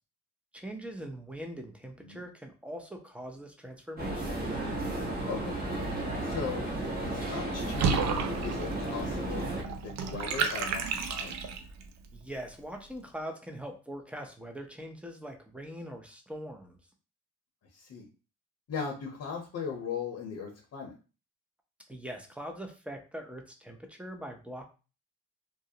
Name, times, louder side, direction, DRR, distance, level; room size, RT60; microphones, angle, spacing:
voice 1, 0.5-4.4 12.1-16.8 21.9-24.6, equal, 5° right, 4 dB, 0.5 m, -42 dB
sound 1, 4.0-9.6, right 1 dB, 30° right, 1.0 m, -33 dB
voice 2, 5.3-5.6 6.2-11.4 17.7-18.1 18.7-20.9, left 5 dB, 55° left, 0 dB, 0.7 m, -38 dB
Water / Bathtub (filling or washing), 7.7-11.8, right 6 dB, 65° right, 0.5 m, -32 dB
2.3 x 2.0 x 2.7 m, 0.33 s
cardioid pair, 90°, 30 cm